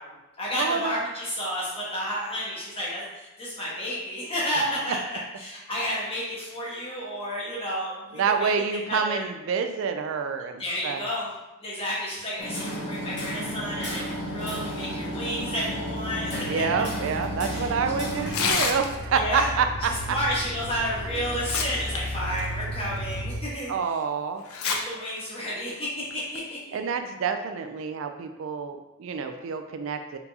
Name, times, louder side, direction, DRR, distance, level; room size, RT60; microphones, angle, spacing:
voice 1, 0.0-8.5 8.9-9.2 10.6-11.3 11.6-16.6 17.5-17.7 19.1-19.5 19.8-24.0 24.6-26.6, equal, 25° left, -6 dB, 1.3 m, -31 dB
voice 2, 0.6-0.9 8.2-11.0 16.5-20.2 23.7-24.4 26.7-30.2, right 6 dB, 65° right, 7 dB, 0.3 m, -27 dB
Hammer, 12.4-18.5, equal, 55° left, 1.2 m, -33 dB
sound 1, 13.4-23.4, equal, 15° right, 1.5 m, -36 dB
Tearing, 18.2-19.2 20.7-20.8 21.2-22.0 22.3-22.5 23.1-23.2 24.5-24.8 25.2-25.3 26.1-26.4, left 5 dB, 85° left, 0.6 m, -27 dB
4.4 x 4.0 x 2.8 m, 0.99 s
head